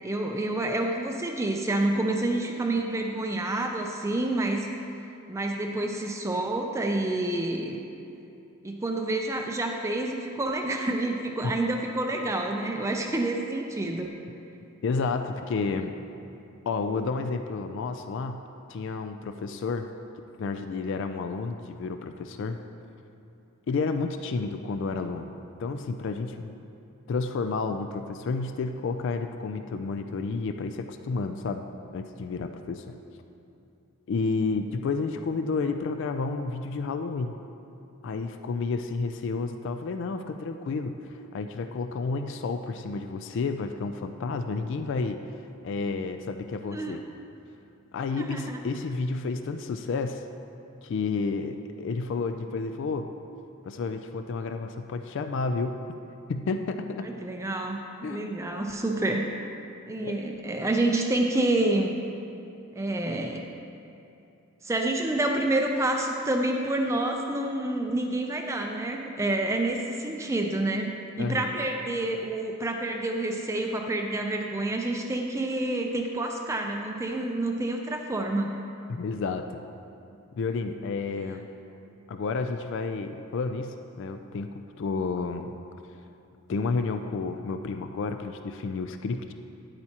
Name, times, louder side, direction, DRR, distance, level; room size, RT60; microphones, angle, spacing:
voice 1, 0.0-4.7 5.3-7.8 8.6-14.1 46.7-47.0 48.2-48.6 57.0-59.3 59.9-62.0 62.7-63.4 64.6-78.6, right 2 dB, 15° right, 2 dB, 0.4 m, -28 dB
voice 2, 14.8-15.9 16.7-18.4 18.7-19.9 20.4-22.6 23.7-25.3 25.6-26.5 27.1-31.7 31.9-33.0 34.1-37.3 38.0-45.2 45.6-47.0 47.9-50.2 50.8-53.1 53.6-55.8 56.3-57.1 58.0-58.3 60.0-60.1 71.2-71.4 78.9-79.6 80.4-81.5 82.1-85.5 86.5-89.3, left 4 dB, 60° left, 7 dB, 0.3 m, -31 dB
9.6 x 8.8 x 2.9 m, 2.7 s
head